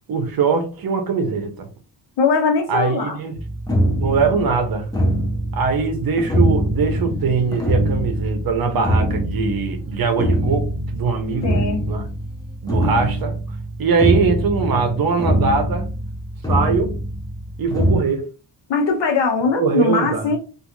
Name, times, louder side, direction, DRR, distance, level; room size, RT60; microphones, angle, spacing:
voice 1, 0.1-1.7 2.7-3.3 4.0-4.9 5.5-12.0 12.6-13.3 13.8-15.9 16.5-16.9 17.6-18.3 19.6-20.3, right 5 dB, 55° right, 0.7 m, -21 dB
voice 2, 2.2-3.2 11.4-11.8 18.7-20.4, left 4 dB, 80° left, 0.9 m, -20 dB
sound 1, 3.3-18.0, equal, 10° left, 0.5 m, -23 dB
2.4 x 2.4 x 2.9 m
wide cardioid pair, 160°, 42 cm